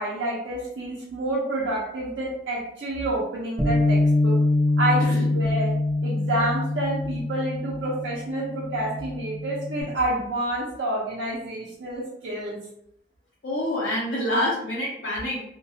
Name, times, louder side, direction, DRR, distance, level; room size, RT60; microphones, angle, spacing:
voice 1, 0.0-4.4 4.8-5.7 6.0-12.6, right 1 dB, 70° right, -6 dB, 0.6 m, -28 dB
Bass guitar, 3.6-9.8, left 2 dB, ahead, 1.2 m, -24 dB
voice 2, 13.4-15.4, left 1 dB, 70° left, -7 dB, 0.6 m, -26 dB
2.3 x 2.2 x 2.7 m, 0.76 s
head